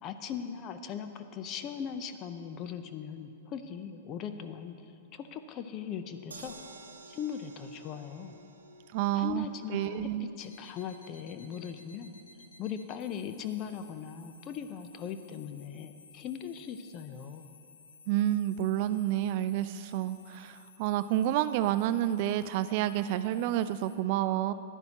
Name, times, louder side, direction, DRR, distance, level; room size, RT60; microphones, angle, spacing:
voice 1, 0.0-4.9 5.1-6.6 7.1-8.3 9.1-12.1 12.6-17.5, left 8 dB, 35° left, 8 dB, 0.7 m, -39 dB
sound 1, 6.3-18.5 18.9-19.0 19.3-19.4, right 3 dB, 85° right, 0.8 m, -56 dB
voice 2, 8.9-9.4 9.7-10.3 18.1-24.5, right 12 dB, 50° right, 12 dB, 0.3 m, -29 dB
sound 2, 10.3-24.0, left 4 dB, 85° left, 1.3 m, -57 dB
14.5 x 11.0 x 2.9 m, 2.6 s
hypercardioid pair, 110°, 0 cm